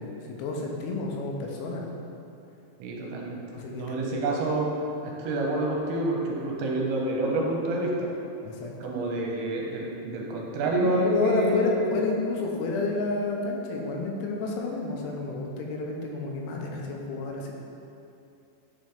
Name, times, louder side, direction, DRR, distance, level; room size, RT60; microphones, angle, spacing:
voice 1, 0.0-1.9 3.5-4.1 8.4-8.9 10.7-17.5, left 3 dB, 90° left, 0 dB, 3.2 m, -30 dB
voice 2, 2.8-3.4 3.7-4.7 5.0-8.1 8.8-11.7, right 1 dB, 80° right, -2 dB, 3.1 m, -28 dB
9.7 x 4.1 x 3.4 m, 2.7 s
omnidirectional pair, 5.3 m